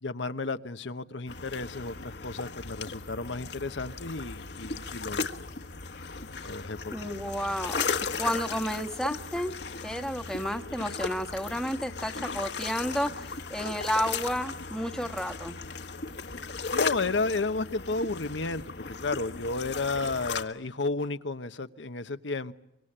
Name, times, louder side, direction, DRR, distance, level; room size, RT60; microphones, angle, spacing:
voice 1, 0.0-5.5 6.4-7.1 16.7-22.5, left 3 dB, 80° left, 10 dB, 1.1 m, -32 dB
sound 1, 1.3-20.4, left 5 dB, 65° left, 1.5 m, -36 dB
voice 2, 6.9-7.9 8.2-9.5 9.8-13.1 13.5-15.5, equal, 5° left, 8 dB, 1.4 m, -31 dB
25.5 x 25.0 x 8.8 m, 0.86 s
head